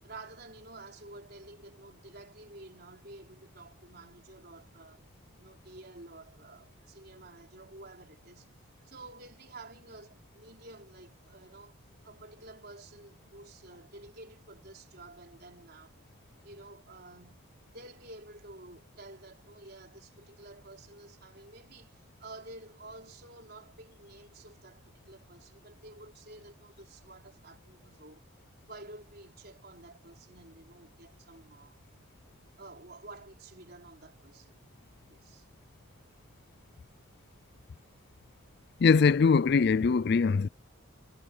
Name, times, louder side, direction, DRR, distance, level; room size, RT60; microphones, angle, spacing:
voice 1, 0.0-5.0 5.4-11.8 12.0-16.0 16.4-28.3 28.6-31.8 32.6-34.6 35.1-35.5, right 2 dB, 45° right, 4.5 m, -51 dB
voice 2, 38.8-40.5, left 5 dB, 50° left, 0.4 m, -22 dB
head